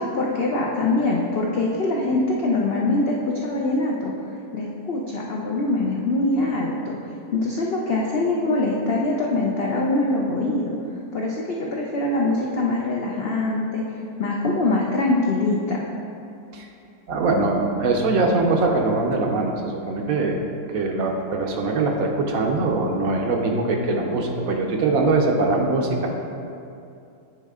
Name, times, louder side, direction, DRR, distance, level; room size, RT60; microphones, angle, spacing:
voice 1, 0.0-4.1 4.5-7.0 7.3-10.7 11.1-13.8 14.2-15.8, left 2 dB, 75° left, -2 dB, 0.5 m, -23 dB
voice 2, 17.1-20.4 20.7-26.1, right 3 dB, 65° right, 1 dB, 1.0 m, -22 dB
8.9 x 4.1 x 3.6 m, 2.6 s
omnidirectional pair, 1.8 m